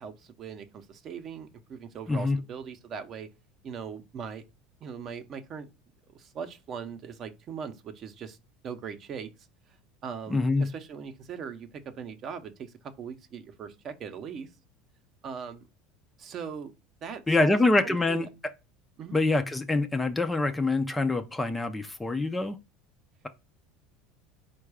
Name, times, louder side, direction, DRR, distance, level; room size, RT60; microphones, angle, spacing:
voice 1, 0.0-3.3 3.6-4.4 4.8-5.7 6.1-8.4 8.6-9.3 10.0-14.5 15.2-15.7 16.2-16.7 17.0-17.6 17.8-18.3 19.0-19.2, right 6 dB, 40° right, 0.7 m, -40 dB
voice 2, 2.1-2.4 10.3-10.7 17.3-18.3 19.1-22.6, left 2 dB, 10° left, 0.4 m, -25 dB
4.5 x 2.3 x 4.7 m
supercardioid pair, 135°, 0 cm